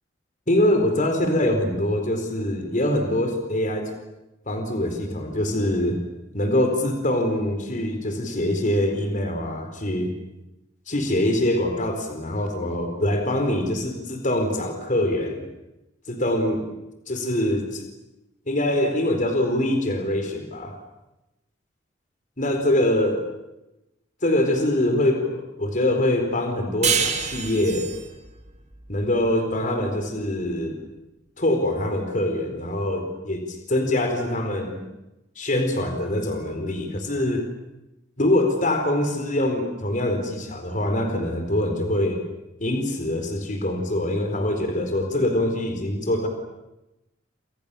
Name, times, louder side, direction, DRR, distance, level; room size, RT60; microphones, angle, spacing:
voice 1, 0.5-3.9 4.5-6.0 6.3-10.1 10.9-15.5 16.1-16.7 17.1-17.8 18.5-20.8 22.4-23.3 24.2-27.9 28.9-30.8 31.4-34.8 35.4-37.5 38.2-42.2 42.6-46.3, left 1 dB, 45° left, 5 dB, 4.5 m, -24 dB
sound 1, 26.8-30.0, right 6 dB, 35° right, 2.4 m, -28 dB
29.0 x 28.0 x 7.1 m, 0.97 s
head